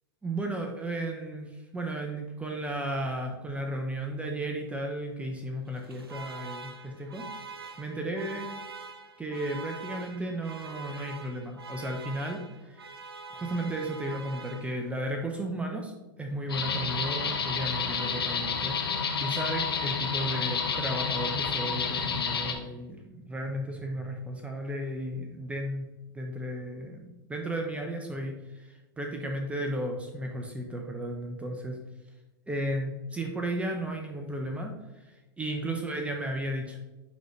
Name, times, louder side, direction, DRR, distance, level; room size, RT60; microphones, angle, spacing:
voice 1, 0.2-7.2 7.8-8.5 9.2-12.9 13.3-18.8 19.2-25.9 26.1-31.8 32.5-36.8, right 1 dB, 10° right, 2 dB, 0.9 m, -34 dB
Alarm, 5.7-15.1, right 4 dB, 80° right, 0.7 m, -44 dB
sound 1, 16.5-22.5, left 5 dB, 80° left, 1.1 m, -30 dB
10.0 x 4.0 x 3.2 m, 1.1 s
hypercardioid pair, 100°, 12 cm